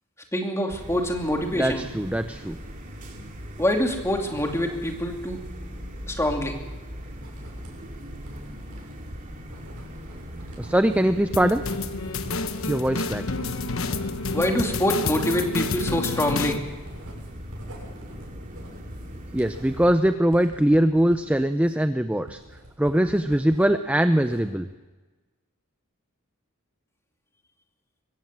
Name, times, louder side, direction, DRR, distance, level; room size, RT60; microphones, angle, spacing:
voice 1, 0.3-1.9 3.6-5.4 6.1-6.6 14.3-16.6, left 1 dB, 15° left, 2 dB, 2.7 m, -25 dB
sound 1, 0.7-19.9, equal, 35° right, 2.9 m, -40 dB
voice 2, 1.6-2.6 10.6-11.6 12.7-13.3 19.3-22.4 22.8-24.7, right 1 dB, 5° right, 9 dB, 0.6 m, -22 dB
Writing, 7.1-23.7 24.0-24.7, right 1 dB, 80° right, 6.8 m, -46 dB
sound 2, 11.3-16.6, left 3 dB, 65° left, 1.2 m, -29 dB
23.0 x 16.5 x 7.5 m, 1.2 s
head